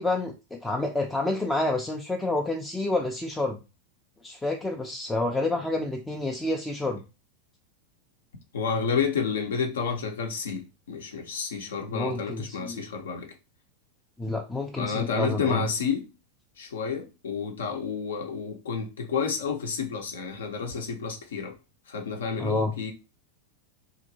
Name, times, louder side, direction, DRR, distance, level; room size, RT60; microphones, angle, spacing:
voice 1, 0.0-3.6 4.2-7.0 11.9-12.8 14.2-15.6 22.4-22.7, left 2 dB, 5° left, 0.4 m, -29 dB
voice 2, 8.5-13.3 14.8-16.1 16.6-21.6 21.9-22.9, left 5 dB, 65° left, 0.6 m, -30 dB
2.9 x 2.5 x 2.6 m
figure-of-eight pair, 90°, 0 cm